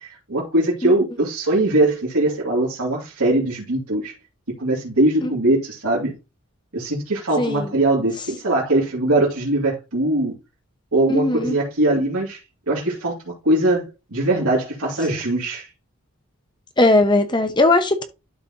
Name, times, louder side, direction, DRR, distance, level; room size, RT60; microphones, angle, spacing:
voice 1, 0.0-4.1 4.6-6.1 6.7-10.3 10.9-12.4 12.7-15.7, right 1 dB, 80° right, 2.6 m, -21 dB
voice 2, 7.4-7.7 11.1-11.6 16.8-18.0, left 2 dB, 20° left, 0.8 m, -18 dB
12.0 x 4.1 x 2.9 m
head